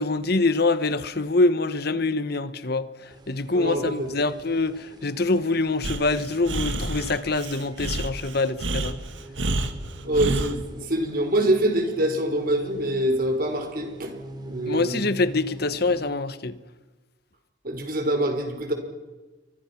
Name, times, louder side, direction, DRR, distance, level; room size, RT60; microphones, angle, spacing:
voice 1, 0.0-2.9 3.3-9.0 14.7-16.5, left 3 dB, 55° left, 1.3 m, -24 dB
sound 1, 3.1-16.0, right 1 dB, 20° right, 3.4 m, -44 dB
voice 2, 3.5-4.1 10.0-14.1 14.4-15.1 17.6-18.7, right 1 dB, 50° right, 5.1 m, -25 dB
Breathing, 5.8-10.6, right 2 dB, 75° right, 2.1 m, -29 dB
29.5 x 25.0 x 6.0 m
head